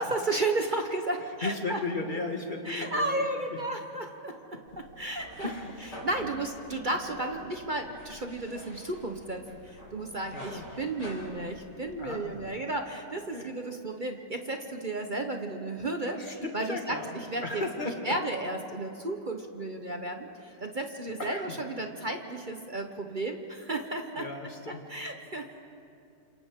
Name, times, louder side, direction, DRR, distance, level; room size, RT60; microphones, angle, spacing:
voice 1, 0.0-1.8 2.6-5.5 5.8-16.2 16.5-17.6 18.0-24.3 24.9-25.5, right 2 dB, 35° right, 4 dB, 0.9 m, -33 dB
voice 2, 1.4-3.2 3.5-3.6 4.5-4.6 5.4-5.9 6.2-6.5 10.3-10.6 12.0-12.6 13.3-13.5 15.0-15.3 16.0-18.0 21.2-21.6 24.2-24.8, left 2 dB, 30° left, 2 dB, 1.8 m, -36 dB
sound 1, 4.7-12.4, equal, 80° left, 5.3 m, -47 dB
28.5 x 27.0 x 3.7 m, 2.6 s
omnidirectional pair, 1.8 m